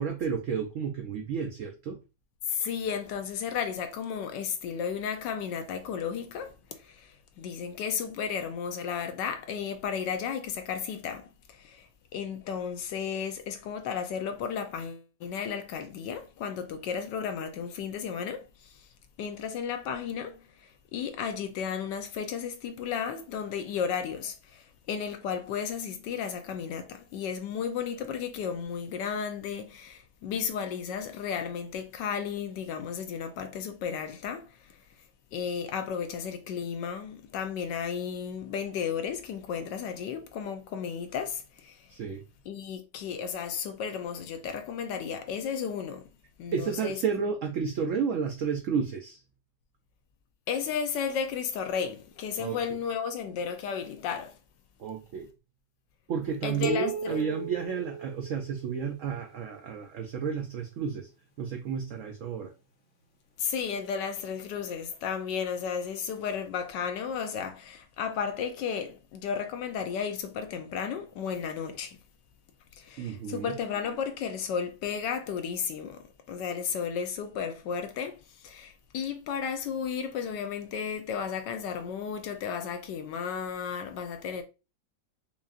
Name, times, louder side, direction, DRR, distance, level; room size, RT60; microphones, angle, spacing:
voice 1, 0.0-2.0 41.9-42.2 46.5-49.2 52.4-52.6 54.8-55.3 56.1-61.1 61.4-62.5 73.0-73.6, right 6 dB, 90° right, 0.7 m, -31 dB
voice 2, 2.5-18.8 19.2-34.8 35.3-41.9 42.5-46.0 46.4-47.0 50.5-54.4 56.4-57.2 63.4-72.0 72.8-84.4, left 7 dB, 80° left, 1.3 m, -34 dB
sound 1, 56.6-59.0, right 5 dB, 55° left, 1.3 m, -36 dB
5.4 x 2.4 x 2.4 m
omnidirectional pair, 1.9 m